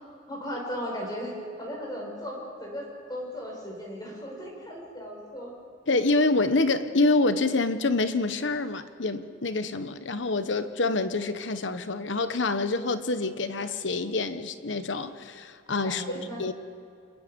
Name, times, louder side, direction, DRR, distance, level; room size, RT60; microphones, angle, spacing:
voice 1, 0.3-1.3 1.6-5.5 15.8-16.4, equal, 20° left, -1 dB, 6.4 m, -36 dB
voice 2, 5.9-16.5, left 3 dB, 70° left, 10 dB, 1.2 m, -26 dB
28.5 x 21.5 x 5.4 m, 2.5 s
head